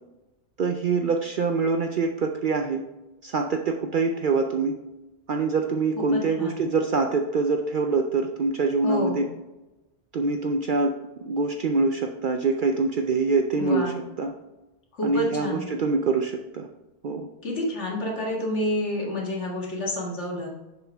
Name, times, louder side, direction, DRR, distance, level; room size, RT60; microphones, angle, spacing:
voice 1, 0.6-2.9 3.2-4.8 5.3-9.3 10.1-13.9 14.2-14.3 15.0-16.7 17.0-17.3, right 4 dB, 55° right, 5 dB, 0.6 m, -25 dB
voice 2, 6.1-6.6 8.8-9.2 13.5-14.0 14.9-15.7 17.4-20.5, left 1 dB, 65° left, -2 dB, 2.1 m, -29 dB
7.0 x 6.2 x 3.4 m, 1.0 s
omnidirectional pair, 1.3 m